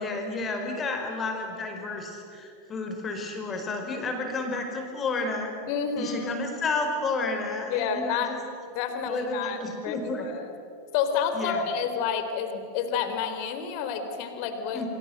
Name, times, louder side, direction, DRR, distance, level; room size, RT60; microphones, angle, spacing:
voice 1, 0.0-5.5 6.0-8.4 9.1-10.3 11.3-11.6 14.7-14.9, left 3 dB, 25° left, 4 dB, 5.0 m, -31 dB
voice 2, 5.7-6.4 7.7-8.3 8.7-10.5 10.9-14.8, left 7 dB, 45° left, 7 dB, 3.6 m, -29 dB
29.0 x 26.0 x 7.8 m, 2.6 s
figure-of-eight pair, 90°, 0 cm